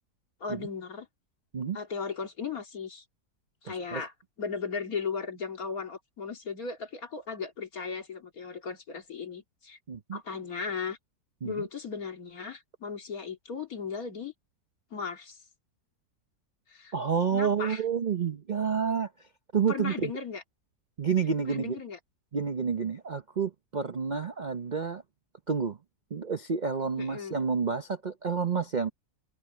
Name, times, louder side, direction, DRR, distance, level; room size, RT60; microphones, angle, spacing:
voice 1, 0.4-1.1 1.7-3.0 3.6-4.1 4.4-9.8 10.1-11.0 11.4-14.3 14.9-15.4 16.7-16.9 17.3-17.8 19.7-20.4 21.4-22.0 27.0-27.4, left 5 dB, 60° left, 2.7 m, -36 dB
voice 2, 3.7-4.0 9.9-10.2 11.4-11.5 16.9-19.1 19.5-20.1 21.0-21.8 22.3-25.0 25.5-25.8 26.1-28.9, right 6 dB, 45° right, 0.6 m, -29 dB
omnidirectional pair, 1.7 m